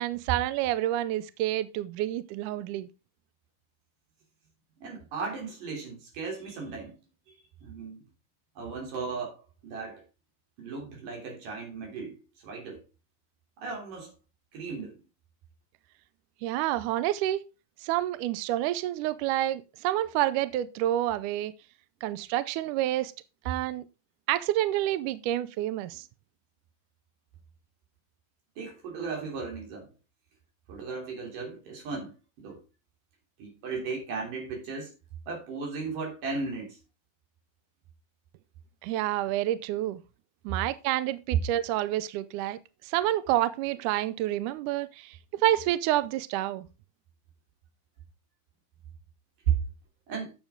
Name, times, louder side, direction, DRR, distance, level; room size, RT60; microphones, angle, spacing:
voice 1, 0.0-2.9 16.4-17.4 17.8-21.5 22.0-23.1 23.5-23.9 24.3-26.0 38.8-40.0 40.5-42.6 42.8-46.7, right 14 dB, 85° right, 1.8 m, -28 dB
voice 2, 4.8-6.9 7.3-7.4 7.6-8.0 8.6-10.0 10.6-12.2 12.4-12.8 13.6-14.1 14.5-15.0 28.6-29.9 30.7-32.6 33.4-34.9 35.3-36.8 49.5-49.6 50.1-50.3, right 5 dB, 65° right, 4.8 m, -35 dB
10.5 x 7.2 x 3.7 m
omnidirectional pair, 4.2 m